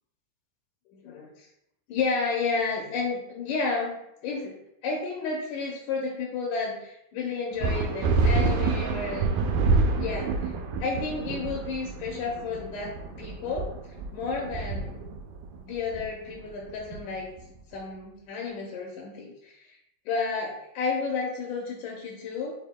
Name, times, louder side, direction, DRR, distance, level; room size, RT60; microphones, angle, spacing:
voice 1, 0.9-1.5 1.9-4.0 4.2-4.6 4.8-9.4 9.9-10.5 10.8-13.7 14.1-15.1 15.6-17.3 17.7-19.8 20.1-22.5, left 4 dB, 80° left, -1 dB, 2.0 m, -31 dB
sound 1, 7.6-17.6, right 3 dB, 85° right, 2.1 m, -28 dB
6.3 x 3.4 x 2.2 m, 0.80 s
omnidirectional pair, 3.6 m